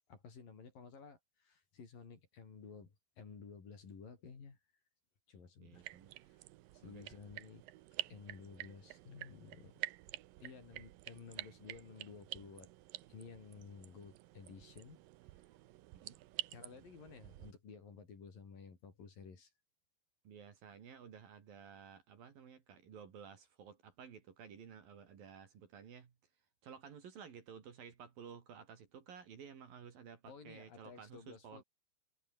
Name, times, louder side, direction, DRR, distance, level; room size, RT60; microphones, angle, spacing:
voice 1, 0.0-4.6 5.3-5.8 6.2-6.4 6.7-7.6 8.1-9.8 10.4-12.7 13.1-15.0 16.5-19.5 30.3-31.6, left 5 dB, 50° left, 6.3 m, -54 dB
voice 2, 5.6-6.1 6.8-7.1 15.9-16.2 20.2-26.1 26.6-31.6, right 7 dB, 55° right, 4.3 m, -54 dB
sound 1, 5.7-17.5, right 16 dB, 75° right, 2.1 m, -49 dB
omnidirectional pair, 5.0 m